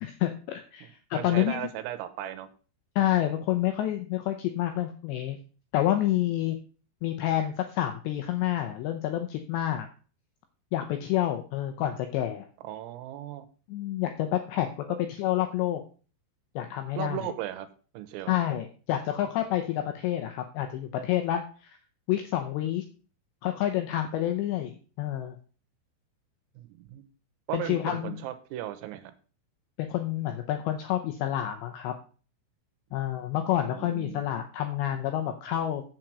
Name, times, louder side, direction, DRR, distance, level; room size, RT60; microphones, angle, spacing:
voice 1, 0.0-1.7 3.0-5.4 5.7-6.6 7.0-9.9 10.7-12.5 13.7-15.8 16.6-17.2 18.3-21.7 22.1-22.8 23.4-25.4 27.5-28.1 29.8-31.9 32.9-35.8, left 12 dB, 80° left, 6 dB, 2.5 m, -28 dB
voice 2, 0.8-2.5 12.6-13.5 17.0-17.7 17.9-18.3 26.6-27.1 27.5-29.1 33.6-34.2, right 12 dB, 85° right, 11 dB, 3.6 m, -37 dB
7.7 x 7.5 x 6.1 m, 0.39 s
omnidirectional pair, 6.0 m